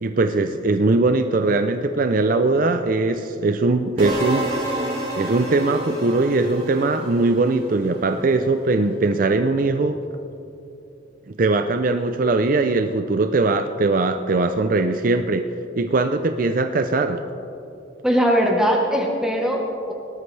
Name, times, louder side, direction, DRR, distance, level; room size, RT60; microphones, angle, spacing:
voice 1, 0.0-4.5 5.2-10.0 11.4-15.5 15.8-17.2, right 3 dB, 50° right, 7 dB, 0.5 m, -20 dB
sound 1, 4.0-8.0, right 1 dB, 35° right, 3.6 m, -29 dB
voice 2, 18.0-19.9, equal, 5° right, 0 dB, 1.1 m, -20 dB
19.0 x 13.0 x 3.3 m, 2.8 s
head